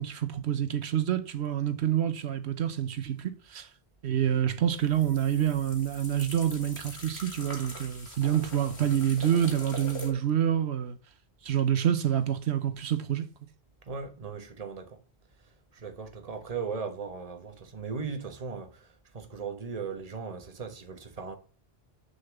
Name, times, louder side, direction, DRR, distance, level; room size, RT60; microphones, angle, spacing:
voice 1, 0.0-3.7 4.0-11.0 11.4-13.3, right 10 dB, 90° right, 1.1 m, -27 dB
sound 1, 4.8-10.1, left 2 dB, 85° left, 2.7 m, -43 dB
voice 2, 13.8-15.0 15.4-21.4, right 5 dB, 35° right, 1.2 m, -38 dB
6.6 x 5.7 x 7.0 m
omnidirectional pair, 1.1 m